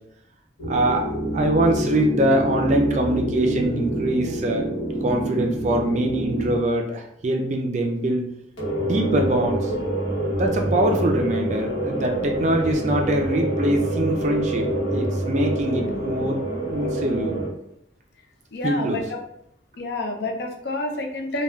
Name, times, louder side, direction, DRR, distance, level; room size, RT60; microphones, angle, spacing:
sound 1, 0.6-6.6 8.6-17.5, right 1 dB, 90° left, 1.0 m, -26 dB
voice 1, 0.6-4.7 5.0-8.3 8.8-9.7 10.3-16.4 16.7-17.4 18.6-19.1, right 1 dB, 40° right, 3 dB, 0.4 m, -23 dB
voice 2, 18.5-19.0 19.8-21.4, left 2 dB, 60° left, 3 dB, 0.4 m, -28 dB
3.5 x 2.3 x 2.2 m, 0.75 s
head